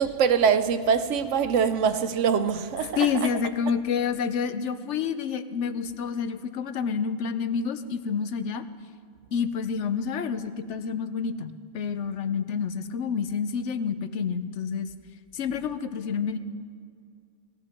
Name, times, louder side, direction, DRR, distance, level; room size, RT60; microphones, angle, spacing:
voice 1, 0.0-3.3, right 6 dB, 85° right, 1.0 m, -23 dB
voice 2, 3.0-8.6 9.3-14.9 15.3-16.4, left 6 dB, 75° left, 1.0 m, -28 dB
18.5 x 13.0 x 4.4 m
omnidirectional pair, 1.2 m